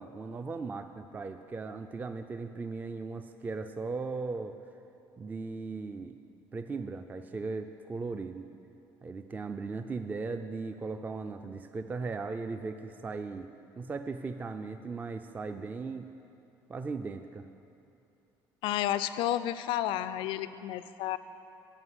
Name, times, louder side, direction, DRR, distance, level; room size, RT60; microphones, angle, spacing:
voice 1, 0.0-4.6 5.2-6.2 6.5-8.5 9.0-13.5 13.8-16.1 16.7-17.5, right 4 dB, 20° right, 8 dB, 0.3 m, -37 dB
voice 2, 18.6-21.2, left 12 dB, 80° left, 13 dB, 0.4 m, -31 dB
11.5 x 4.7 x 8.0 m, 2.7 s
cardioid pair, 125°, 9 cm